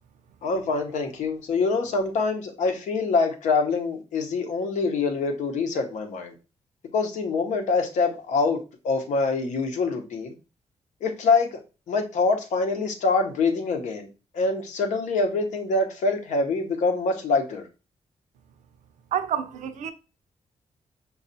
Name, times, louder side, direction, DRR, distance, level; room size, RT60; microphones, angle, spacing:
voice 1, 0.4-6.3 6.9-10.3 11.0-11.6 11.9-14.1 14.3-17.6, left 4 dB, 90° left, 0.8 m, -25 dB
voice 2, 19.1-19.9, right 9 dB, 85° right, 0.5 m, -28 dB
5.4 x 2.3 x 2.6 m
wide cardioid pair, 160°, 12 cm